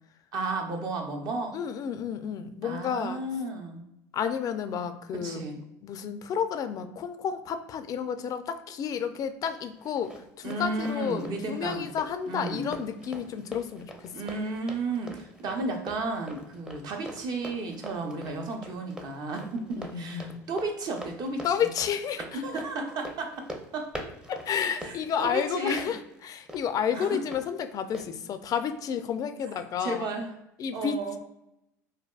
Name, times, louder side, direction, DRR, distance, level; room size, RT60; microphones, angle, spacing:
voice 1, 0.3-1.6 2.6-3.9 5.2-5.6 10.4-11.9 12.3-12.7 14.1-21.4 22.3-23.5 23.7-23.9 24.8-25.8 26.9-27.2 29.8-30.3 30.7-31.2, right 2 dB, 50° right, 3 dB, 0.7 m, -33 dB
voice 2, 1.5-3.2 4.1-5.5 5.8-14.1 19.8-20.3 21.4-22.4 24.3-30.0 30.6-31.2, left 8 dB, 45° left, 9 dB, 0.3 m, -31 dB
Run, 9.6-27.4 27.9-28.1, equal, 10° right, 0.5 m, -44 dB
3.4 x 2.2 x 2.3 m, 0.86 s
hypercardioid pair, 70°, 9 cm